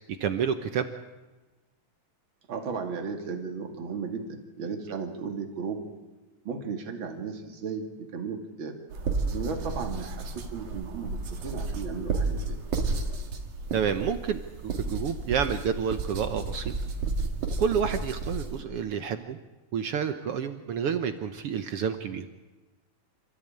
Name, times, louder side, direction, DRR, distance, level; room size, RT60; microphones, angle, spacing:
voice 1, 0.2-0.9 13.7-16.7 17.6-19.4 19.7-22.3, right 7 dB, 65° right, 9 dB, 1.6 m, -29 dB
voice 2, 2.5-5.8 6.4-8.7 9.3-12.6, right 5 dB, 45° right, 4 dB, 2.9 m, -35 dB
sound 1, 8.9-18.6, right 3 dB, 80° right, 3.5 m, -32 dB
27.5 x 14.0 x 8.8 m, 1.2 s
omnidirectional pair, 3.4 m